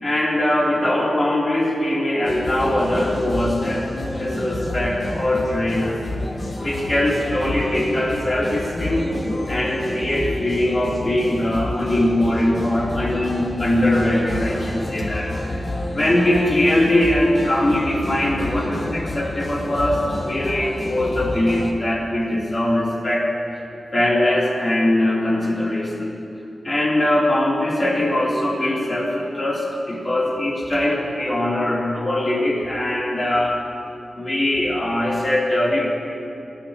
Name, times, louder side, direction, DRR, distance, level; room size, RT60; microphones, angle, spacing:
voice 1, 0.0-6.0 6.6-9.1 9.5-23.3 23.9-26.2 26.6-33.6 34.1-35.9, left 1 dB, 30° left, -5 dB, 3.2 m, -21 dB
sound 1, 2.2-21.7, left 1 dB, 50° left, 1.3 m, -29 dB
22.0 x 10.5 x 3.0 m, 2.7 s
wide cardioid pair, 115°, 0 cm